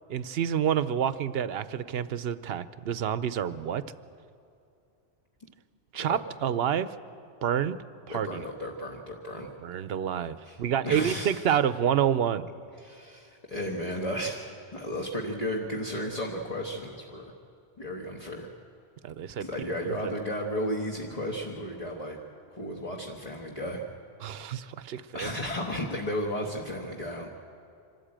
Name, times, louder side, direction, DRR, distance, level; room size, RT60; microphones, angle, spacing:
voice 1, 0.1-3.8 5.9-6.9 7.4-7.8 8.1-8.4 9.6-12.4 19.0-20.1 24.2-25.3, right 9 dB, 70° right, 14 dB, 0.9 m, -28 dB
voice 2, 8.1-9.5 10.4-11.5 12.8-17.3 17.8-18.5 19.4-22.2 22.5-23.8 24.9-27.3, equal, 35° left, -1 dB, 1.4 m, -34 dB
25.5 x 13.0 x 8.8 m, 2.6 s
omnidirectional pair, 1.1 m